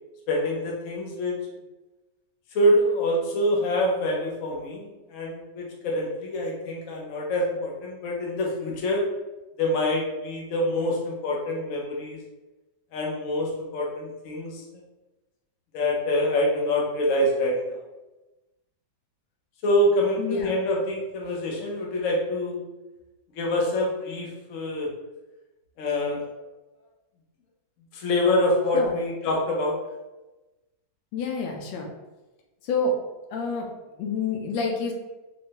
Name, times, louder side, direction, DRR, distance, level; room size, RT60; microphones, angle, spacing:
voice 1, 0.3-1.4 2.5-9.0 9.6-12.2 12.9-14.6 15.7-17.8 19.6-22.6 23.4-24.9 25.8-26.2 27.9-29.8, left 1 dB, 55° left, -2 dB, 0.9 m, -25 dB
voice 2, 20.2-20.5 28.7-28.9 31.1-31.9 32.6-32.9 33.3-33.7 34.0-34.9, left 4 dB, 80° left, 1 dB, 1.4 m, -28 dB
4.6 x 2.2 x 2.9 m, 1.1 s
omnidirectional pair, 2.1 m